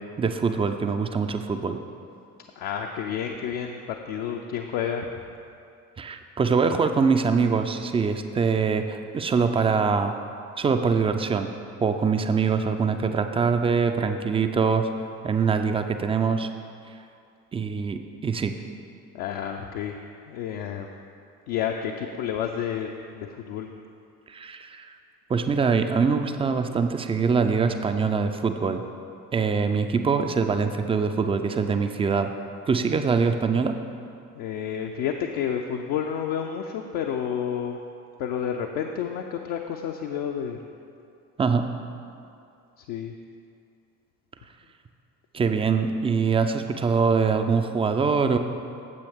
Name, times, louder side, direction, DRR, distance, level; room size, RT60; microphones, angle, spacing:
voice 1, 0.2-1.8 6.0-10.1 10.6-11.5 11.8-14.9 15.2-16.5 17.5-18.5 24.3-24.9 25.3-28.8 29.3-32.3 32.7-33.8 41.4-41.7 45.3-48.4, right 5 dB, 15° right, 7 dB, 0.4 m, -23 dB
voice 2, 2.6-5.1 19.1-20.0 20.3-20.9 21.5-23.7 34.3-37.8 38.2-40.6 42.8-43.1, left 8 dB, 55° left, 2 dB, 0.6 m, -30 dB
9.2 x 7.5 x 3.5 m, 2.5 s
figure-of-eight pair, 50°, 45 cm